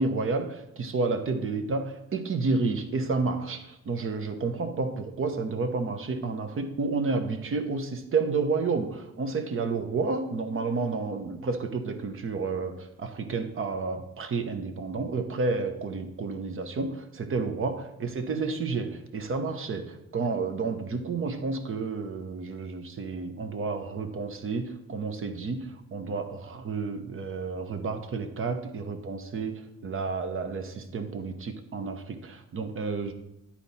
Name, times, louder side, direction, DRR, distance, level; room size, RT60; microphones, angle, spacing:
voice 1, 0.0-33.1, right 4 dB, 45° right, 7 dB, 1.0 m, -30 dB
10.0 x 4.3 x 4.2 m, 0.85 s
cardioid pair, 90°, 30 cm